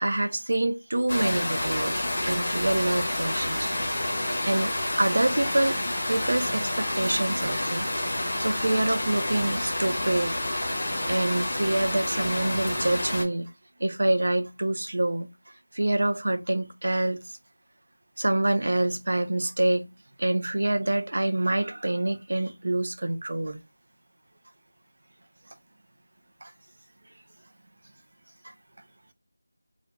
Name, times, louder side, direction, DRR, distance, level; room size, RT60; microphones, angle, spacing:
voice 1, 0.0-3.7 4.1-5.8 6.1-10.3 11.1-13.5 13.8-15.3 15.7-17.2 18.2-19.9 20.2-23.6 26.4-26.5 28.4-28.5, right 1 dB, 45° right, 0.3 m, -26 dB
sound 1, 1.1-13.2, left 1 dB, 20° left, 0.7 m, -29 dB
2.4 x 2.2 x 3.0 m
figure-of-eight pair, 180°, 0 cm